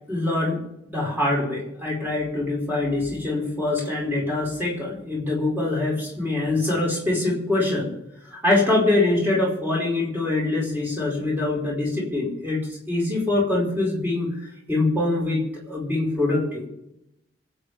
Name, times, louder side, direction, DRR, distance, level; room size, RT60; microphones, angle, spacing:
voice 1, 0.1-0.6 0.9-7.9 8.3-16.7, left 2 dB, 10° right, -4 dB, 5.1 m, -24 dB
25.5 x 8.7 x 3.6 m, 0.86 s
head